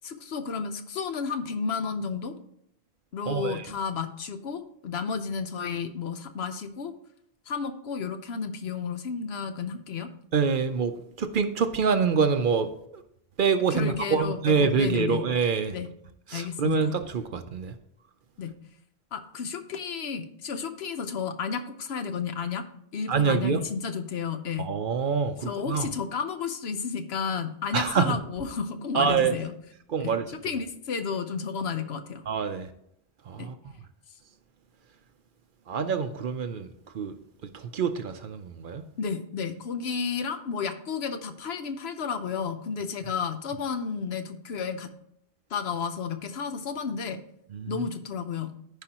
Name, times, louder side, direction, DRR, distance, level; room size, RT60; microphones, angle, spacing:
voice 1, 0.0-2.3 3.1-6.9 7.5-10.1 13.7-15.2 15.7-15.9 16.3-16.9 18.4-18.5 19.1-22.6 22.9-24.7 25.4-29.5 30.0-32.3 33.4-33.5 39.0-44.9 45.5-47.2 47.7-48.5, left 6 dB, 75° left, 8 dB, 1.0 m, -32 dB
voice 2, 3.3-3.7 10.3-13.0 13.4-15.8 16.3-17.7 23.1-23.6 24.6-25.9 27.7-28.2 28.9-29.4 29.9-30.3 32.3-32.7 33.3-33.6 35.7-36.7 36.9-37.2 37.4-38.9 47.5-47.8, right 6 dB, 60° right, 9 dB, 0.7 m, -26 dB
14.0 x 5.0 x 2.9 m, 0.73 s
omnidirectional pair, 1.1 m